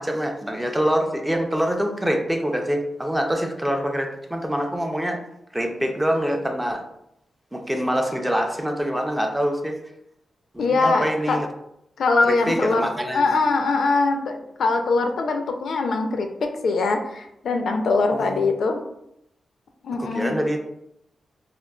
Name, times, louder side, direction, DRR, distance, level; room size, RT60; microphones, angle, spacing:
voice 1, 0.0-5.2 5.5-6.8 7.5-9.8 10.5-11.5 12.2-13.3 18.1-18.4 20.0-20.6, equal, 5° right, 3 dB, 0.4 m, -25 dB
voice 2, 10.6-11.4 12.0-18.8 19.8-20.4, left 3 dB, 70° left, 5 dB, 0.4 m, -22 dB
3.6 x 2.3 x 2.2 m, 0.78 s
wide cardioid pair, 135°, 0 cm